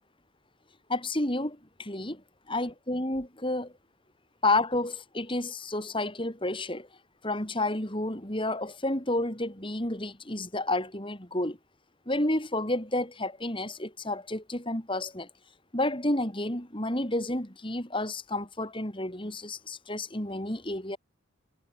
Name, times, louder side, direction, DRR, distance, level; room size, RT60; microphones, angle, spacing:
voice 1, 0.9-2.2 2.5-3.7 4.4-6.9 7.2-11.6 12.1-15.3 15.7-21.0, left 2 dB, 25° left, 3.8 m, -30 dB
head